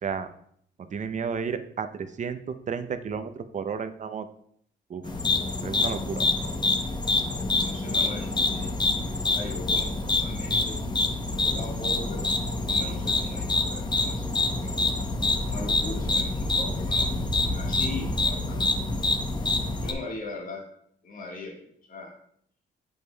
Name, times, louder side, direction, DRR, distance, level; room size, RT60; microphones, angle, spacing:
voice 1, 0.8-4.3 4.9-5.1 5.6-6.2, right 6 dB, 40° right, 9 dB, 0.6 m, -32 dB
sound 1, 5.0-19.9, left 2 dB, 20° left, 0.7 m, -26 dB
voice 2, 7.6-10.8 11.2-12.3 12.6-14.8 15.4-17.1 17.4-18.8 19.1-19.2 19.8-20.6 21.0-21.5 21.8-22.1, left 2 dB, 45° left, -1 dB, 1.5 m, -40 dB
7.9 x 5.3 x 2.2 m, 0.67 s
cardioid pair, 90°, 20 cm